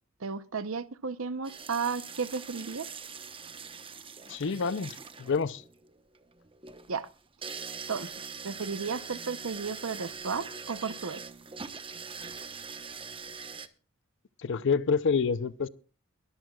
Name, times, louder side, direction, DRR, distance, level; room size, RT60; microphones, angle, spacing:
voice 1, 0.2-2.9 6.9-7.1 7.9-8.1 8.4-11.2, right 5 dB, 80° right, 0.8 m, -33 dB
sound 1, 1.4-13.7, right 5 dB, 25° right, 1.0 m, -43 dB
voice 2, 4.3-5.6 14.4-15.7, left 5 dB, 60° left, 0.6 m, -28 dB
22.0 x 14.0 x 2.3 m
head